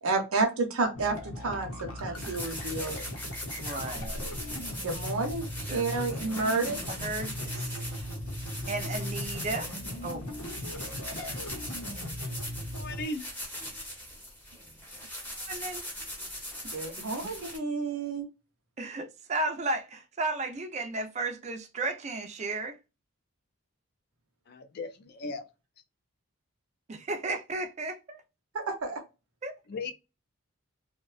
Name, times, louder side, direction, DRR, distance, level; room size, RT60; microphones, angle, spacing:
voice 1, 0.0-3.0 4.8-6.8 16.7-18.3 28.5-29.0, right 3 dB, 75° right, 0.6 m, -30 dB
sound 1, 0.9-13.1, left 1 dB, 70° left, 0.7 m, -38 dB
sound 2, 2.1-17.6, left 1 dB, 10° left, 0.6 m, -40 dB
voice 2, 3.6-4.1 5.7-5.9 6.9-7.9 8.7-9.7 10.0-10.2 10.6-10.9 15.3-15.8 16.6-16.8 17.2-17.3 18.8-22.8 26.9-28.2 29.4-29.5, right 2 dB, 30° right, 0.4 m, -34 dB
voice 3, 12.7-13.3 24.5-25.4 29.7-29.9, left 2 dB, 45° left, 0.3 m, -36 dB
2.6 x 2.1 x 2.3 m
head